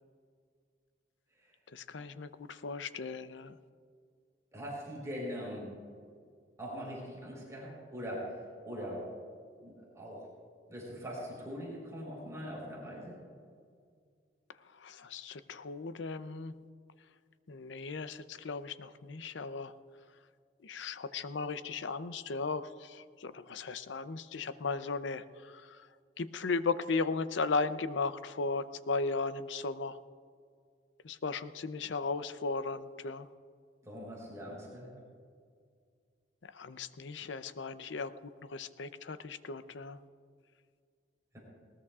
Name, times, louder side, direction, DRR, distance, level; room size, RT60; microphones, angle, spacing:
voice 1, 1.7-3.6 14.8-16.5 17.5-19.7 20.6-25.8 26.2-30.0 31.0-33.3 36.5-38.1 38.4-40.0, left 4 dB, 80° left, 12 dB, 0.6 m, -36 dB
voice 2, 4.5-5.7 6.6-9.1 9.6-10.2 10.7-13.1 33.8-34.9 41.3-41.4, equal, 15° right, -4 dB, 4.1 m, -42 dB
20.5 x 19.0 x 2.4 m, 2.1 s
head